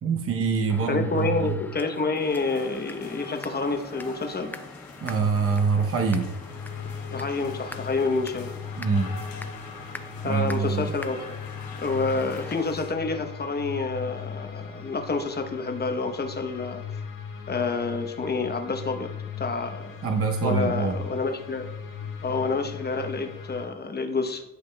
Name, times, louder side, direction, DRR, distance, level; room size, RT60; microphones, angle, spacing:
voice 1, 0.0-1.6 5.0-6.3 8.8-9.2 10.2-10.9 20.0-21.0, right 5 dB, 40° right, 3 dB, 0.9 m, -25 dB
sound 1, 0.7-12.5, left 2 dB, 5° left, 0.4 m, -44 dB
voice 2, 0.9-4.5 7.1-8.5 10.2-11.4 11.8-16.8 17.5-19.1 19.4-20.0 20.4-21.7 22.2-24.4, left 3 dB, 30° left, 5 dB, 0.9 m, -28 dB
sound 2, 2.2-12.9, left 4 dB, 85° left, 1.1 m, -45 dB
sound 3, 6.4-23.7, left 6 dB, 70° left, 1.7 m, -39 dB
11.5 x 5.1 x 2.3 m, 0.93 s
cardioid pair, 90°, 34 cm